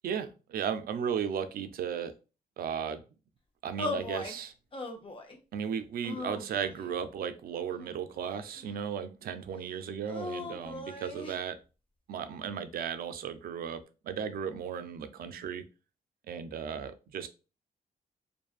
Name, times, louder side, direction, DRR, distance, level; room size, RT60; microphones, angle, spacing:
voice 1, 0.0-2.1 2.6-3.0 3.6-4.5 5.5-11.6 12.1-15.7 16.3-17.3, right 7 dB, 70° right, 0.4 m, -35 dB
sound 1, 3.8-4.4 4.7-5.4 6.0-6.9 7.7-8.7 10.1-11.4, left 3 dB, 35° left, 0.6 m, -39 dB
2.6 x 2.4 x 2.3 m
cardioid pair, 60°, 16 cm